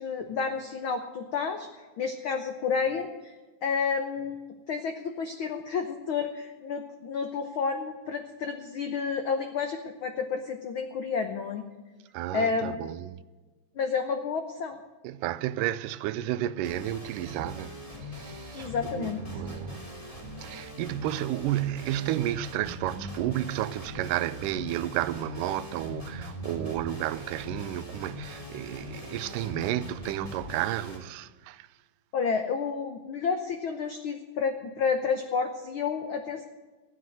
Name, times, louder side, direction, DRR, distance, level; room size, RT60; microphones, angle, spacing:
voice 1, 0.0-3.4 3.6-11.6 12.3-12.8 13.8-14.8 18.5-19.4 32.1-36.4, left 5 dB, 85° left, 1.1 m, -30 dB
voice 2, 12.1-13.2 15.0-19.9 20.4-31.7, right 13 dB, 90° right, 2.2 m, -32 dB
sound 1, 16.6-31.0, equal, 10° left, 2.3 m, -41 dB
14.0 x 9.5 x 7.7 m
omnidirectional pair, 3.7 m